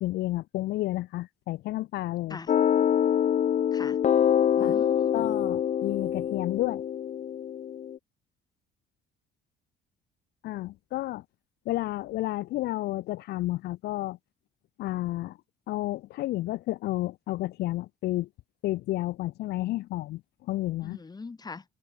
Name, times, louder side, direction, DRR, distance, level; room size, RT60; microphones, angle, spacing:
voice 1, 0.0-2.4 4.6-4.7 5.1-6.8 10.4-11.2 11.7-14.2 14.8-15.4 15.7-18.3 18.6-20.2 20.5-21.0, left 17 dB, 75° left, 0.8 m, -31 dB
sound 1, 2.5-8.0, left 9 dB, 45° left, 1.0 m, -25 dB
voice 2, 4.6-5.4 20.8-21.6, left 4 dB, 25° left, 6.5 m, -42 dB
cardioid pair, 110°, 17 cm